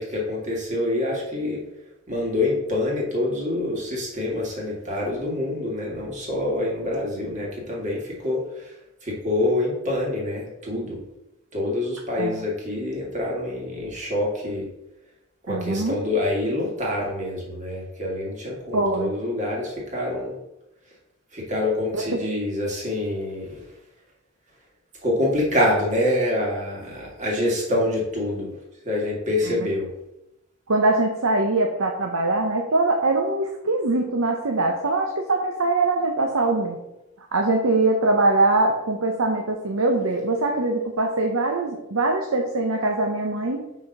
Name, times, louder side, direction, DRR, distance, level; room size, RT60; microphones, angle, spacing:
voice 1, 0.0-1.6 2.1-8.8 9.0-11.0 11.5-14.7 15.4-20.4 21.3-23.6 25.0-28.6 28.8-29.9, left 1 dB, 35° right, -3 dB, 2.0 m, -26 dB
voice 2, 15.5-16.0 18.7-19.1 21.9-22.0 29.4-29.6 30.7-36.8 37.3-43.7, right 2 dB, 85° right, 2 dB, 0.8 m, -22 dB
5.6 x 4.4 x 5.2 m, 0.88 s
head